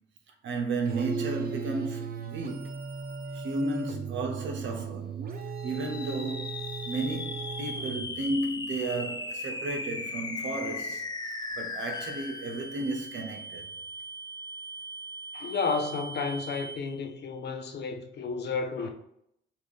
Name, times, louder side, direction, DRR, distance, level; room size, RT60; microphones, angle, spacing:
voice 1, 0.4-2.7 3.3-5.2 5.6-6.6 6.8-11.1 11.6-13.7, right 2 dB, 70° right, 1.0 m, -33 dB
sound 1, 0.9-8.3, right 6 dB, 50° right, 0.7 m, -37 dB
sound 2, 5.6-17.1, left 2 dB, 20° left, 0.6 m, -38 dB
voice 2, 15.3-18.9, left 4 dB, 60° left, 0.8 m, -32 dB
5.8 x 2.6 x 3.3 m
cardioid pair, 90°, 20 cm